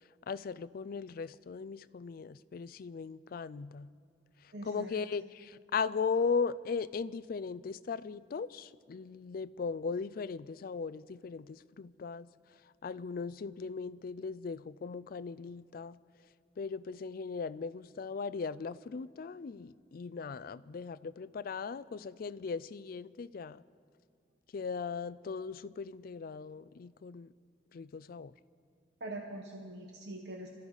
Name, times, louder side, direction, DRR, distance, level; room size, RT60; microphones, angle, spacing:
voice 1, 0.3-3.9 4.6-12.3 12.8-16.0 16.6-23.6 24.5-27.3 27.7-28.3, left 5 dB, 55° left, 17 dB, 0.4 m, -38 dB
voice 2, 4.5-4.9 29.0-30.5, right 2 dB, 65° right, 1 dB, 1.1 m, -43 dB
26.0 x 13.5 x 4.0 m, 2.1 s
head